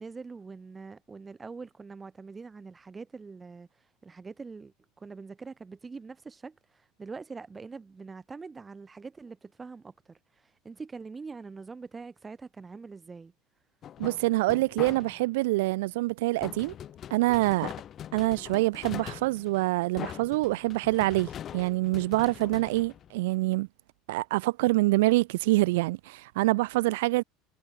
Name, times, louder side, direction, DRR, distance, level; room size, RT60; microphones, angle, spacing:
voice 1, 0.0-3.7 4.0-10.2 10.6-13.3, right 4 dB, 15° right, 4.5 m, -43 dB
sound 1, 13.8-15.4 16.4-23.5, left 10 dB, 35° left, 4.1 m, -42 dB
voice 2, 14.0-16.7 17.1-17.7 18.1-23.7 24.1-27.2, right 20 dB, 85° right, 0.3 m, -26 dB
supercardioid pair, 130°, 0 cm